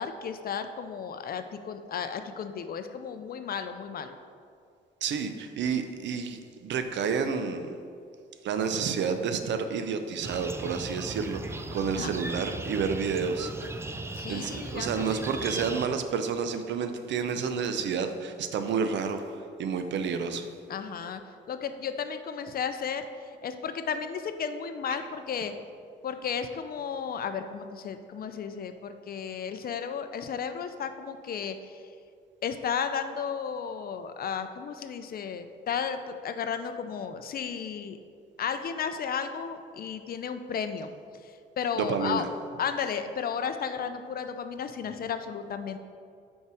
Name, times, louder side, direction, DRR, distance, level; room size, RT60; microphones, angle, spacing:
voice 1, 0.0-4.2 12.0-12.2 14.1-15.2 20.7-21.2 21.5-23.0 23.4-25.5 26.0-31.8 32.4-38.0 38.4-40.9 41.2-42.3 42.6-45.8, left 7 dB, 50° left, 9 dB, 0.5 m, -34 dB
voice 2, 5.0-7.7 8.4-13.5 14.3-20.5 41.8-42.3, right 6 dB, 65° right, 8 dB, 0.6 m, -30 dB
sound 1, 10.2-15.9, right 2 dB, 15° right, 0.3 m, -38 dB
5.6 x 4.6 x 4.8 m, 2.3 s
cardioid pair, 90°, 20 cm